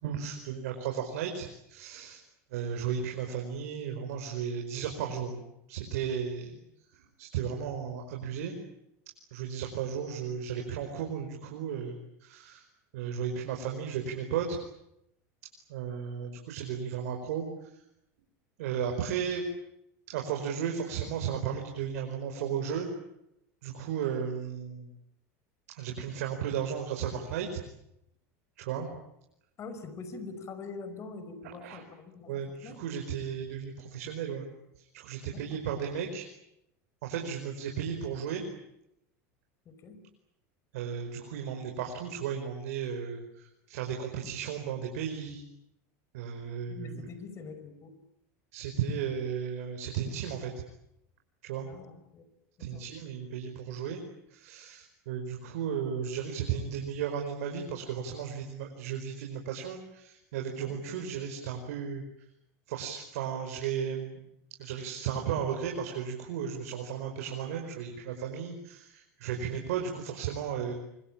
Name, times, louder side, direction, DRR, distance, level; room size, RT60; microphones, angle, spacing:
voice 1, 0.0-2.2 2.5-5.4 5.7-6.6 7.2-8.6 9.3-12.0 12.2-12.6 12.9-14.6 15.7-17.4 18.6-19.4 20.1-22.9 23.6-24.9 25.7-27.6 28.6-28.9 31.6-31.8 32.3-34.5 34.9-36.2 37.0-38.4 40.7-45.4 46.1-47.0 48.5-50.5 51.4-51.7 52.6-54.0 54.3-62.0 62.7-64.2 64.6-70.7, right 7 dB, 80° right, 2 dB, 5.0 m, -34 dB
voice 2, 29.6-32.3 32.6-32.8 35.3-35.6 39.7-40.0 46.7-47.9 51.6-52.3 52.6-52.8 60.6-60.8, left 4 dB, 35° left, 11 dB, 5.3 m, -44 dB
26.5 x 24.5 x 8.9 m, 0.81 s
supercardioid pair, 115°, 8 cm